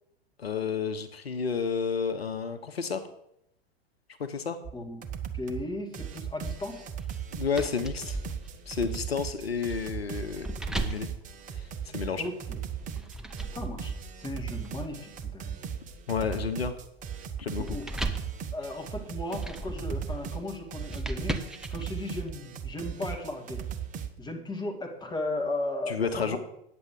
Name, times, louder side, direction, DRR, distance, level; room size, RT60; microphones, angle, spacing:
voice 1, 0.4-3.1 4.2-4.6 7.3-8.2 8.7-10.5 10.7-11.1 11.5-12.2 16.1-16.7 17.4-17.6 25.9-26.4, left 6 dB, 80° left, 9 dB, 1.0 m, -31 dB
sound 1, 4.6-4.7 5.0-5.6 5.9-24.1, right 8 dB, 25° right, 1.1 m, -38 dB
voice 2, 5.3-6.9 12.2-12.6 13.5-15.6 17.6-17.9 18.5-21.4 21.7-23.7 24.2-26.4, left 2 dB, 15° left, 2 dB, 2.1 m, -36 dB
sound 2, 6.4-12.2 12.8-22.3, right 1 dB, ahead, 0.9 m, -39 dB
9.7 x 7.7 x 6.4 m, 0.78 s
figure-of-eight pair, 95°, 31 cm